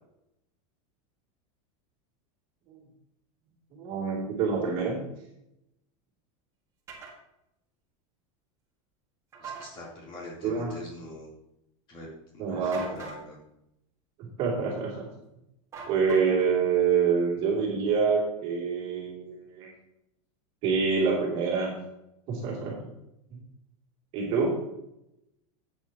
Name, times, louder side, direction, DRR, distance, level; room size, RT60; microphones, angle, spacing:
voice 1, 3.7-5.0 10.4-10.7 12.4-12.9 14.2-15.1 15.9-19.7 20.6-21.7 22.3-22.9 23.3-23.4 24.1-24.5, right 5 dB, 35° right, -2 dB, 2.9 m, -26 dB
sound 1, 6.9-7.1 9.3-9.7 12.6-13.2 15.7-16.5, right 5 dB, 20° right, 2.0 m, -41 dB
voice 2, 9.4-11.3 11.9-12.1 12.3-13.4, left 1 dB, 30° left, -4 dB, 3.6 m, -43 dB
13.0 x 8.6 x 3.0 m, 0.85 s
supercardioid pair, 180°, 17 cm